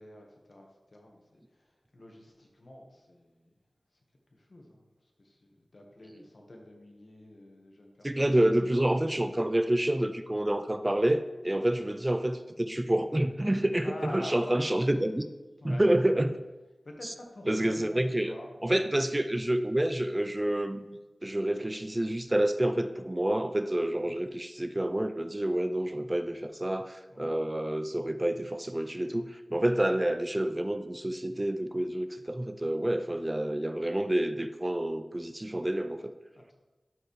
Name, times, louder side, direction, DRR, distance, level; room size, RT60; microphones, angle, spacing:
voice 1, 0.0-3.5 3.9-4.0 4.3-8.4 8.7-9.4 11.5-11.7 13.8-14.6 15.6-16.2 16.8-18.9 23.9-24.2 27.1-27.3 36.3-36.5, left 1 dB, 65° left, 0 dB, 1.4 m, -48 dB
voice 2, 8.0-15.3 15.6-16.4 17.5-18.3 18.6-36.1, right 1 dB, 25° right, 10 dB, 0.5 m, -28 dB
12.5 x 4.4 x 3.2 m, 1.1 s
wide cardioid pair, 45°, 0 cm